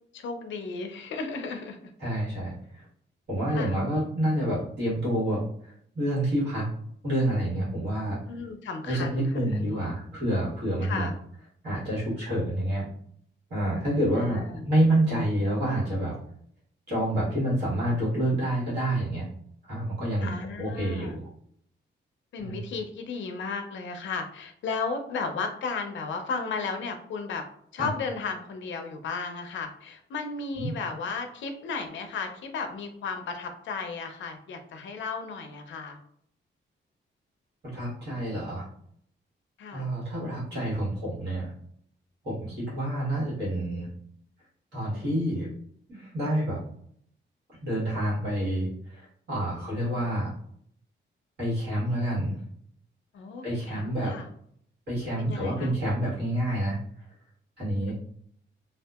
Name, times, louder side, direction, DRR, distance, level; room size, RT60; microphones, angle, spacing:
voice 1, 0.1-1.9 3.5-3.8 8.3-9.9 10.8-11.2 14.2-14.7 20.2-21.2 22.3-27.4 27.7-36.0 39.6-39.9 49.5-50.0 53.1-54.3 55.2-55.7, left 4 dB, 75° left, 6 dB, 0.4 m, -34 dB
voice 2, 2.0-2.8 3.3-6.6 7.0-8.2 8.8-11.1 11.6-12.9 13.5-16.2 16.9-19.2 19.7-20.3 20.6-21.2 22.4-22.6 27.8-27.9 30.6-30.7 37.6-38.6 39.7-41.5 42.2-43.9 44.7-45.5 45.9-46.6 47.6-50.3 51.4-52.4 53.4-54.1 54.9-56.8 57.6-57.9, right 1 dB, 60° right, -8 dB, 1.4 m, -28 dB
2.6 x 2.3 x 2.3 m, 0.66 s
wide cardioid pair, 145°, 20 cm